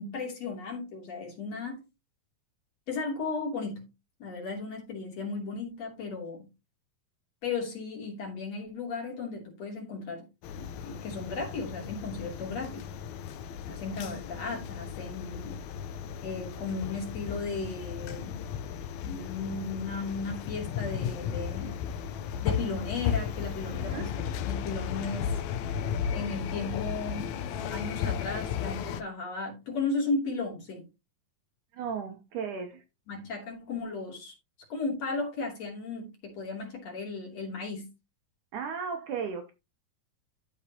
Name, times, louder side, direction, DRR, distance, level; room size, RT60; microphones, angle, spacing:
voice 1, 0.0-1.8 2.9-3.9 4.2-6.5 7.4-10.3 10.6-12.9 13.7-15.6 16.2-18.4 19.0-21.7 22.4-25.4 26.1-27.3 27.7-30.9 33.1-34.3 34.7-37.9, left 4 dB, 45° left, 3.7 m, -35 dB
sound 1, 10.4-29.0, left 8 dB, 80° left, 1.7 m, -35 dB
voice 2, 13.9-14.6 23.8-24.1 31.7-32.8 38.5-39.5, right 6 dB, 70° right, 2.1 m, -36 dB
13.0 x 5.2 x 2.9 m
omnidirectional pair, 4.2 m